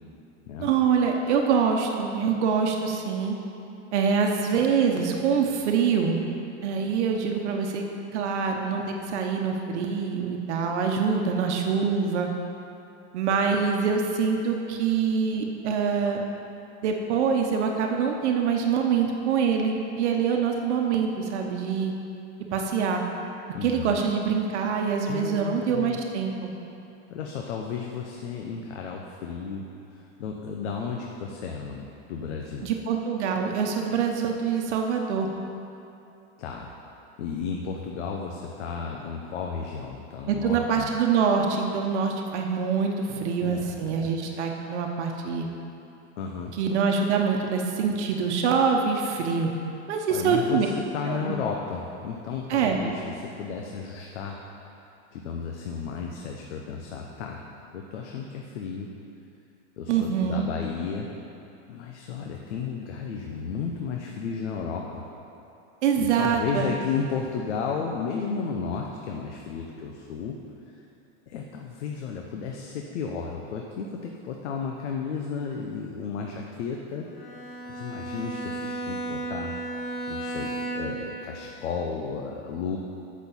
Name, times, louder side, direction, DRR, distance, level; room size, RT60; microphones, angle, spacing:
voice 1, 0.6-3.3 3.9-6.2 6.6-7.8 8.1-12.3 13.1-16.2 16.8-21.9 22.5-23.0 23.6-26.5 32.6-35.3 40.3-45.5 46.5-49.5 49.9-50.7 51.1-51.4 52.5-52.8 59.9-60.5 65.8-66.7, right 6 dB, 80° right, 2 dB, 1.1 m, -25 dB
voice 2, 23.5-23.9 25.1-26.0 27.1-29.7 29.9-32.7 36.4-36.7 37.2-40.9 43.1-44.1 46.2-46.6 50.1-54.4 55.1-57.4 57.7-58.9 59.8-61.1 61.7-65.0 66.0-70.4 71.3-77.1 77.6-79.5 80.1-82.8, left 6 dB, 90° left, 1 dB, 1.0 m, -33 dB
Bowed string instrument, 77.1-81.1, right 2 dB, 65° left, 2.0 m, -34 dB
8.3 x 6.2 x 7.1 m, 2.8 s
supercardioid pair, 155°, 34 cm